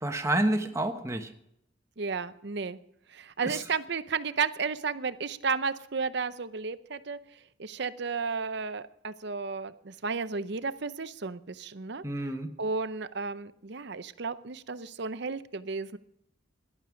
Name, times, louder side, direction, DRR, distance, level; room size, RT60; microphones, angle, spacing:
voice 1, 0.0-1.3 3.4-3.6 12.0-12.5, right 1 dB, 15° right, 6 dB, 1.2 m, -29 dB
voice 2, 2.0-2.8 3.1-7.2 7.6-12.0 12.6-16.0, right 5 dB, 55° right, 13 dB, 0.7 m, -33 dB
17.0 x 11.0 x 5.1 m, 0.77 s
head